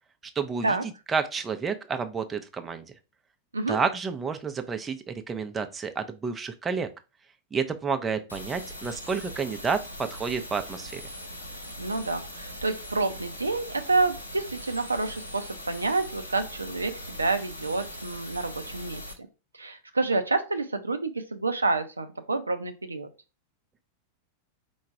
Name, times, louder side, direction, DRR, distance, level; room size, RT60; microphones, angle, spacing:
voice 1, 0.4-0.8 1.1-2.8 3.7-6.9 7.5-11.0, right 5 dB, 15° right, 7 dB, 0.5 m, -30 dB
sound 1, 8.3-19.1, equal, 85° left, 1.0 m, -41 dB
voice 2, 11.8-19.0 19.5-23.1, right 3 dB, 80° right, 8 dB, 0.5 m, -28 dB
4.7 x 2.3 x 4.6 m, 0.30 s
figure-of-eight pair, 90°, 0 cm